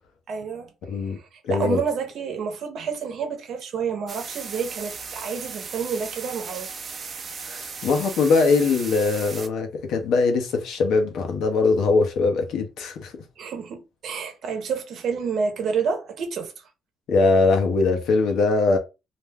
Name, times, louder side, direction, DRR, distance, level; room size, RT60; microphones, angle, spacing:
voice 1, 0.3-0.7 1.0-6.7 13.4-16.5, right 6 dB, 70° right, 0.8 m, -29 dB
voice 2, 0.9-1.2 1.4-1.8 7.4-13.1 17.1-18.8, left 4 dB, 80° left, 0.8 m, -21 dB
sound 1, 4.1-9.5, right 5 dB, 45° right, 0.5 m, -36 dB
2.5 x 2.2 x 3.4 m
cardioid pair, 90°, 0 cm